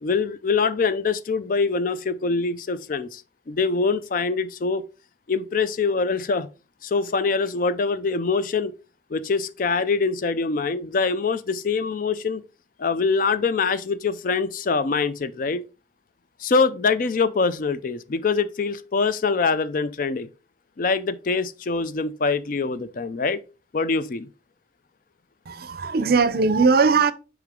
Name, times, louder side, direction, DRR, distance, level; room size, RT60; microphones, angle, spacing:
voice 1, 0.0-4.8 5.3-6.5 6.8-8.7 9.1-12.4 12.8-15.7 16.4-20.3 20.8-23.4 23.7-24.3, left 4 dB, 45° left, 0.4 m, -24 dB
voice 2, 25.5-27.1, right 4 dB, 55° right, 0.5 m, -19 dB
6.3 x 4.8 x 3.7 m
head